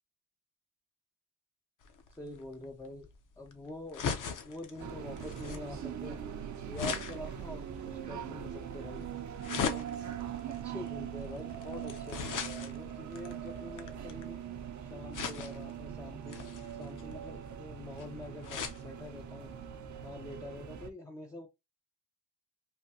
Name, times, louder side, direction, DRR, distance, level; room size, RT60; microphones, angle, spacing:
sound 1, 1.8-14.4 15.1-15.8 16.3-18.8 19.3-19.4 19.6-19.7, left 6 dB, 45° left, 0.7 m, -40 dB
voice 1, 2.2-3.1 3.4-4.1 4.4-6.2 6.7-9.1 9.7-9.9 10.5-14.4 14.8-19.5 20.0-21.5, left 1 dB, 10° left, 0.5 m, -45 dB
sound 2, 4.8-20.9, right 9 dB, 40° right, 0.6 m, -42 dB
3.5 x 2.2 x 2.7 m
supercardioid pair, 80°, 44 cm